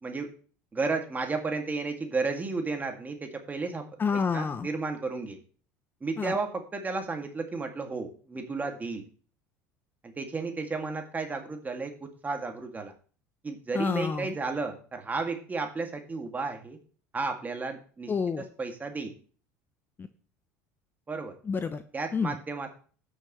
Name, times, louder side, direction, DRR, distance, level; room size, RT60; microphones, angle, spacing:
voice 1, 0.7-3.8 4.3-5.4 6.0-9.0 10.2-12.9 13.4-16.8 17.1-18.1 18.6-19.1 21.1-21.3 21.9-22.7, right 3 dB, 20° right, 4 dB, 2.4 m, -33 dB
voice 2, 4.0-4.7 6.2-6.4 13.7-14.4 18.1-18.5 20.0-20.1 21.4-21.8 22.1-22.4, left 5 dB, 30° left, 11 dB, 0.8 m, -29 dB
16.0 x 6.5 x 3.2 m, 0.41 s
supercardioid pair, 85°, 7 cm